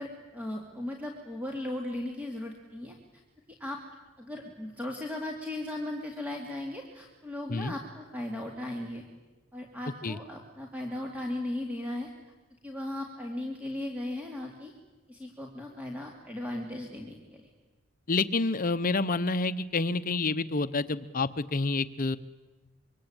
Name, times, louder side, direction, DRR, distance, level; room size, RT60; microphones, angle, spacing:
voice 1, 0.0-3.0 3.6-3.8 4.2-9.0 9.5-12.1 12.6-14.7 15.1-17.5, left 1 dB, 5° right, 1 dB, 2.7 m, -37 dB
voice 2, 18.1-22.2, left 3 dB, 40° left, 13 dB, 0.8 m, -28 dB
25.5 x 24.0 x 8.9 m, 1.2 s
head